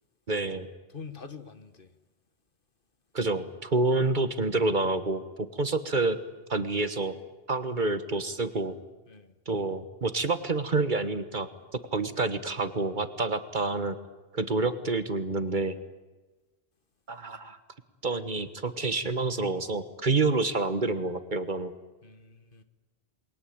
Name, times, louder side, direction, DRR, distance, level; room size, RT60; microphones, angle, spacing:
voice 1, 0.3-0.7 3.1-6.2 6.5-7.2 7.5-8.7 9.5-11.5 11.9-14.0 14.3-15.8 17.1-17.6 18.0-21.7, right 3 dB, 45° right, 1.5 m, -28 dB
voice 2, 0.9-1.9 9.1-9.3 22.0-22.6, left 5 dB, 55° left, 1.5 m, -45 dB
28.0 x 21.5 x 8.7 m
omnidirectional pair, 1.1 m